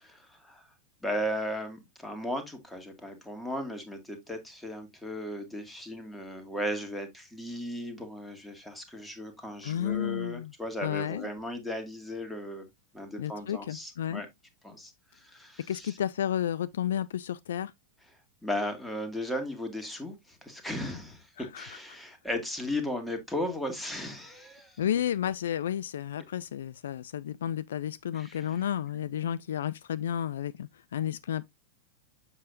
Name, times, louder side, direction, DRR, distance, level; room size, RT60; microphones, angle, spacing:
voice 1, 0.3-0.6 1.0-12.7 12.9-14.3 14.6-16.0 18.4-24.8 28.1-28.5, left 1 dB, 5° left, 1.7 m, -36 dB
voice 2, 9.6-10.5 10.8-11.3 13.2-14.2 15.7-17.7 21.4-21.7 24.8-31.5, left 10 dB, 60° left, 0.3 m, -32 dB
7.3 x 6.3 x 2.5 m
figure-of-eight pair, 90°, 0 cm